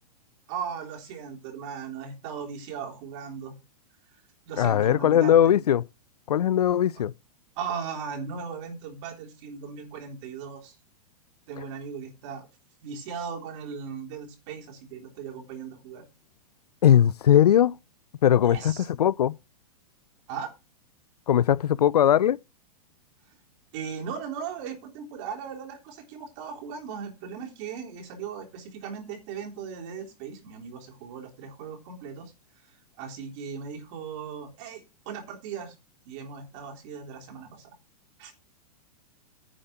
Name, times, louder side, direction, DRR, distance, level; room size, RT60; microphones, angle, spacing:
voice 1, 0.5-3.5 4.5-5.5 7.6-10.7 11.5-12.5 12.8-16.0 18.3-18.9 20.3-20.5 23.7-32.3 33.0-35.7 36.1-37.7 38.2-38.3, right 6 dB, 50° right, 3.6 m, -37 dB
voice 2, 4.6-5.8 6.3-7.1 16.8-17.8 18.2-19.4 21.3-22.4, left 10 dB, 85° left, 0.5 m, -20 dB
10.0 x 5.2 x 6.0 m
hypercardioid pair, 120°, 20 cm